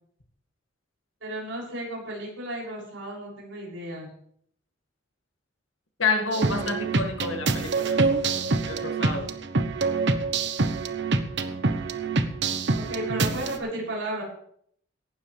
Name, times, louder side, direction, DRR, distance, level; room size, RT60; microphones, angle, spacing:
voice 1, 1.2-4.1 12.7-14.2, right 1 dB, 80° right, -3 dB, 7.0 m, -33 dB
voice 2, 6.0-8.0 8.7-9.3, left 4 dB, 85° left, 4 dB, 2.1 m, -28 dB
sound 1, 6.3-13.6, right 3 dB, 65° right, 1.1 m, -26 dB
17.5 x 12.5 x 3.4 m, 0.64 s
head